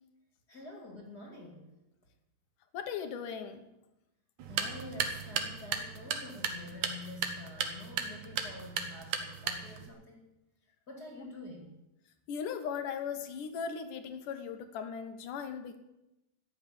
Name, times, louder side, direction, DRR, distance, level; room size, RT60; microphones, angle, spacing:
voice 1, 0.5-1.7 4.4-10.2 10.9-11.8, left 2 dB, 30° left, 0 dB, 2.4 m, -47 dB
voice 2, 2.7-3.7 11.2-11.3 12.3-15.8, left 7 dB, 70° left, 8 dB, 2.6 m, -38 dB
sound 1, 4.4-9.9, right 7 dB, 65° right, 2.4 m, -36 dB
14.5 x 7.1 x 9.9 m, 0.93 s
omnidirectional pair, 4.0 m